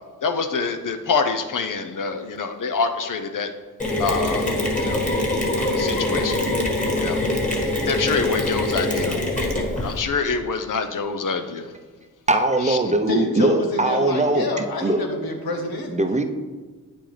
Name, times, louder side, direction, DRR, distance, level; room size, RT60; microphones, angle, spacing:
voice 1, 0.2-3.5 4.0-5.0 5.6-6.4 6.9-7.2 7.9-9.1 9.8-11.6 12.7-12.8, left 5 dB, 60° left, 7 dB, 0.7 m, -26 dB
Mechanisms, 3.8-10.0, left 1 dB, 20° left, 1.7 m, -23 dB
voice 2, 12.3-14.5 14.8-15.0 15.9-16.2, right 2 dB, 20° right, 5 dB, 0.7 m, -20 dB
voice 3, 13.1-15.9, left 2 dB, 80° left, 2 dB, 1.2 m, -27 dB
8.9 x 5.9 x 3.3 m, 1.4 s
cardioid pair, 60°, 36 cm